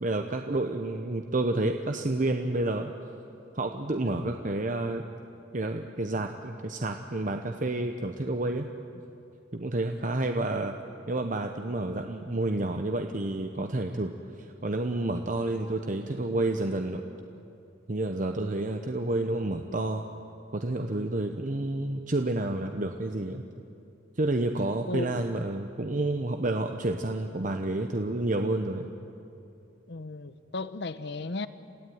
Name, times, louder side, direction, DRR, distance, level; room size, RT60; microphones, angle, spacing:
voice 1, 0.0-2.9 3.5-5.0 5.5-8.7 9.5-10.8 11.1-14.1 14.6-17.0 17.9-20.0 20.5-23.4 24.2-28.9, right 2 dB, 45° right, 5 dB, 1.0 m, -29 dB
voice 2, 24.9-25.2 29.9-31.5, left 2 dB, 65° left, 13 dB, 0.9 m, -35 dB
28.0 x 16.5 x 9.4 m, 2.7 s
head